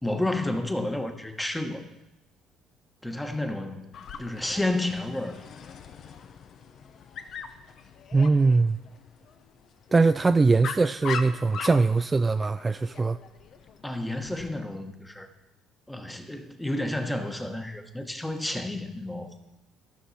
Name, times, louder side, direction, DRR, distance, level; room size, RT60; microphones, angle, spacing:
voice 1, 0.0-1.9 3.0-3.9 4.2-5.4 13.8-15.3 15.9-19.4, left 1 dB, 5° left, 1.3 m, -31 dB
Dog, 3.9-14.5, left 6 dB, 55° left, 0.8 m, -41 dB
voice 2, 8.1-8.8 9.9-13.2, right 3 dB, 25° right, 0.3 m, -21 dB
14.0 x 6.2 x 4.2 m
supercardioid pair, 80°, 0 cm